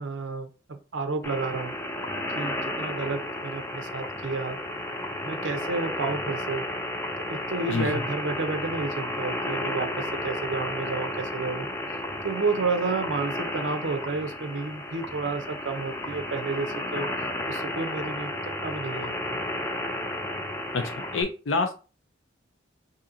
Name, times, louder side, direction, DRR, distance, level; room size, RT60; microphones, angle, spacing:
voice 1, 0.0-1.8 2.4-4.6 5.2-6.6 7.3-11.7 12.2-17.1 17.5-19.4, right 3 dB, 85° right, 7 dB, 0.6 m, -31 dB
sound 1, 1.2-21.2, left 1 dB, 15° left, 0.4 m, -33 dB
voice 2, 21.1-21.7, left 4 dB, 90° left, 6 dB, 0.6 m, -26 dB
2.8 x 2.7 x 3.7 m, 0.35 s
head